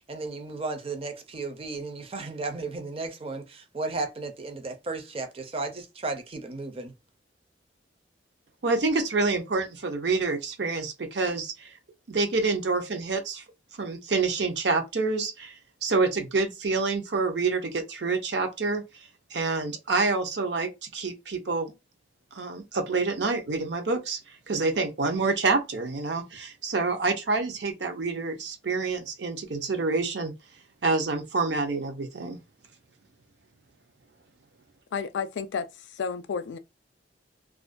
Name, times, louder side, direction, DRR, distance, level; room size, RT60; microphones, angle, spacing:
voice 1, 0.1-6.9, right 3 dB, 30° right, 0.5 m, -34 dB
voice 2, 8.6-11.7 12.1-13.4 13.8-18.8 19.3-21.7 22.3-24.2 24.5-30.3 30.8-32.4, right 3 dB, 70° right, 0.6 m, -27 dB
voice 3, 34.9-36.6, left 6 dB, 80° left, 0.3 m, -32 dB
2.4 x 2.1 x 2.4 m
head